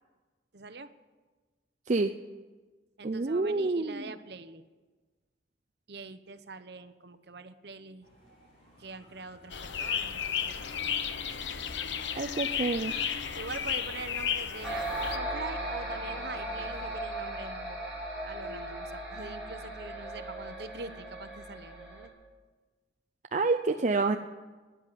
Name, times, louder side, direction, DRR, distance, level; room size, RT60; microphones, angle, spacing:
voice 1, 0.5-0.9 3.0-4.6 5.9-8.1 8.8-11.1 13.4-17.8 18.2-22.1, right 3 dB, 60° right, 11 dB, 0.9 m, -44 dB
voice 2, 3.0-4.1 12.2-12.9 23.3-24.2, right 3 dB, 40° right, 5 dB, 0.5 m, -28 dB
sound 1, 8.0-16.9, left 1 dB, 35° left, 5.1 m, -55 dB
sound 2, 9.5-15.2, left 7 dB, 70° left, 0.8 m, -33 dB
sound 3, 14.6-22.1, right 1 dB, ahead, 5.2 m, -37 dB
12.5 x 10.0 x 9.9 m, 1.3 s
head